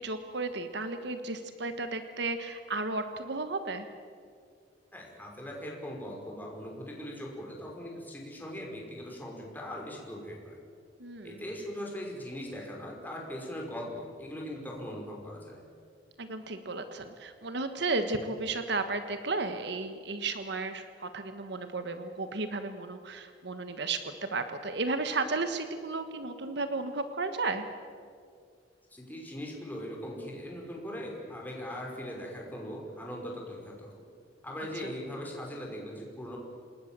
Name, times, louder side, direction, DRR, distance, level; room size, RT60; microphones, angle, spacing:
voice 1, 0.0-3.9 11.0-11.4 16.2-27.7 34.8-34.9, right 3 dB, 65° right, 8 dB, 1.4 m, -34 dB
voice 2, 4.9-10.6 11.2-15.5 28.9-34.0 34.4-36.4, equal, 10° left, -1 dB, 5.4 m, -40 dB
28.0 x 20.0 x 7.6 m, 2.2 s
head